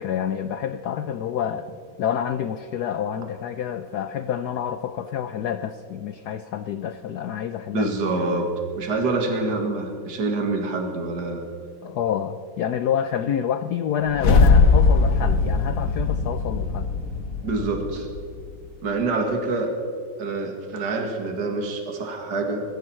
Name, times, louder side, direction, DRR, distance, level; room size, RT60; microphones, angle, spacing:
voice 1, 0.0-1.7 2.0-7.9 11.8-16.9, left 9 dB, 80° left, 10 dB, 0.8 m, -28 dB
voice 2, 7.7-8.5 8.8-11.4 17.4-18.1 18.8-19.7 20.2-22.6, right 3 dB, 50° right, 2 dB, 2.5 m, -26 dB
sound 1, 14.1-18.4, left 4 dB, 45° left, 1.3 m, -19 dB
22.5 x 15.0 x 4.4 m, 2.2 s
omnidirectional pair, 2.4 m